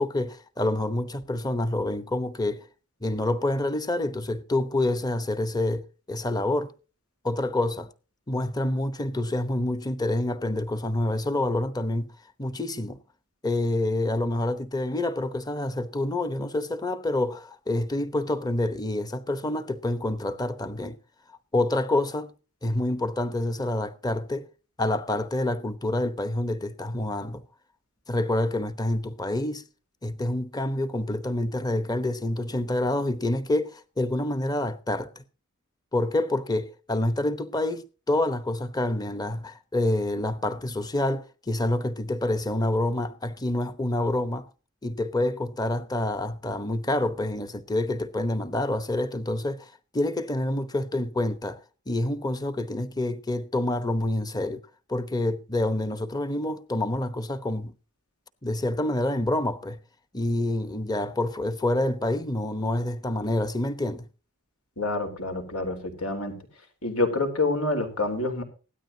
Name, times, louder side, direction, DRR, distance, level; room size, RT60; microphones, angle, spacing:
voice 1, 0.0-2.7 3.0-6.7 7.2-7.9 8.3-12.1 12.4-13.0 13.4-20.9 21.5-22.3 22.6-24.5 24.8-27.4 28.1-29.6 30.0-35.1 35.9-44.5 44.8-51.6 51.9-54.6 54.9-57.7 58.4-59.8 60.1-64.1, left 1 dB, 20° left, 0.9 m, -27 dB
voice 2, 64.8-66.4 66.8-68.4, left 2 dB, 80° left, 3.8 m, -27 dB
17.0 x 12.5 x 2.8 m
head